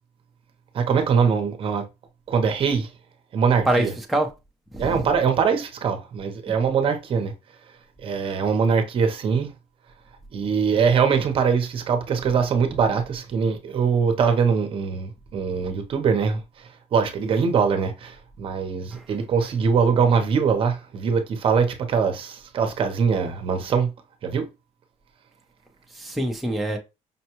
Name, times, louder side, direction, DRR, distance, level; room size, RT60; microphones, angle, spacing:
voice 1, 0.7-1.8 2.3-2.9 3.3-3.9 4.8-7.3 8.0-9.5 10.3-23.9 24.2-24.5, right 6 dB, 45° right, 0.8 m, -22 dB
voice 2, 3.7-4.3 4.7-4.9 18.9-19.0 25.9-26.8, right 1 dB, ahead, 0.6 m, -24 dB
5.4 x 2.2 x 2.9 m
cardioid pair, 135°, 13 cm